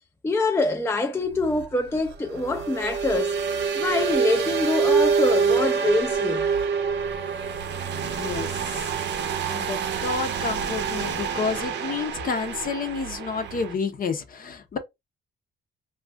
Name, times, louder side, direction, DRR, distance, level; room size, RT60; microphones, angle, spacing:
voice 1, 0.2-3.4 3.7-6.5, left 2 dB, 10° left, 0.4 m, -25 dB
sound 1, 1.3-13.7, right 6 dB, 65° right, 0.6 m, -26 dB
voice 2, 7.9-8.5 9.5-14.8, left 5 dB, 45° left, 0.7 m, -30 dB
2.5 x 2.3 x 3.3 m
cardioid pair, 90°, 20 cm